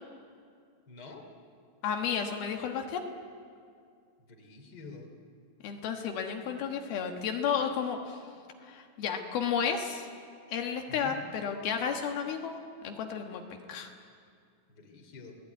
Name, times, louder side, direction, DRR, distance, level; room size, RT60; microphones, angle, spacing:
voice 1, 0.9-1.3 4.3-5.1 10.9-11.2 14.7-15.4, left 4 dB, 30° left, 3 dB, 3.3 m, -47 dB
voice 2, 1.8-3.0 5.6-8.2 8.6-10.1 10.5-12.6 12.8-13.4 13.7-13.9, left 7 dB, 80° left, 4 dB, 3.3 m, -32 dB
29.5 x 18.0 x 9.4 m, 2.3 s
omnidirectional pair, 4.4 m